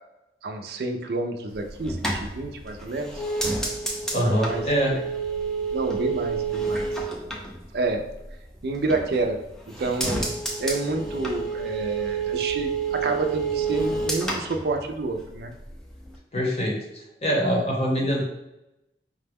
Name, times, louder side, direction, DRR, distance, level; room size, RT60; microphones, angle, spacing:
voice 1, 0.4-3.2 4.2-4.6 4.9-5.0 5.7-6.9 7.7-8.1 8.6-9.4 9.8-15.5, right 3 dB, 60° right, 5 dB, 0.4 m, -29 dB
sound 1, 1.5-8.3 8.7-9.4 9.7-15.4 15.7-16.1, right 4 dB, 5° left, 0.4 m, -29 dB
voice 2, 4.1-5.0 16.3-18.2, equal, 35° left, -1 dB, 0.8 m, -24 dB
4.9 x 2.1 x 3.4 m, 0.92 s
head